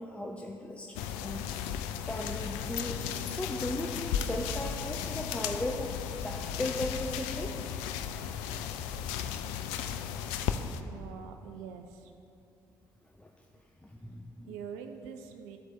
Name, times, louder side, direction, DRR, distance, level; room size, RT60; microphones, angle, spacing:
voice 1, 0.0-1.7 2.1-5.9 6.2-7.5 13.2-13.3 13.8-14.5, left 1 dB, 10° left, -1 dB, 0.6 m, -37 dB
sound 1, 0.9-10.8, left 8 dB, 65° left, 0.4 m, -35 dB
voice 2, 10.8-12.1 14.5-15.6, right 7 dB, 70° right, 5 dB, 0.4 m, -44 dB
13.5 x 4.6 x 3.1 m, 2.6 s
figure-of-eight pair, 45°, 11 cm